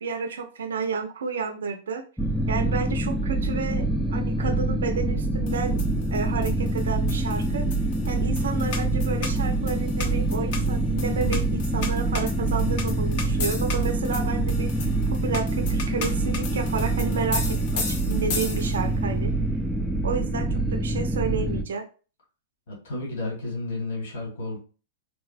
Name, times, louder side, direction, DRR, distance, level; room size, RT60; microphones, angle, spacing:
voice 1, 0.0-2.0 2.5-5.8 6.1-7.7 8.1-19.3 20.0-21.8, right 5 dB, 85° right, 6 dB, 0.4 m, -31 dB
sound 1, 2.2-21.6, right 2 dB, ahead, 0.3 m, -25 dB
sound 2, 5.5-19.0, left 5 dB, 55° left, 0.6 m, -36 dB
voice 2, 22.7-24.6, left 2 dB, 70° left, -2 dB, 1.4 m, -32 dB
3.3 x 2.1 x 2.4 m, 0.36 s
hypercardioid pair, 130°, 0 cm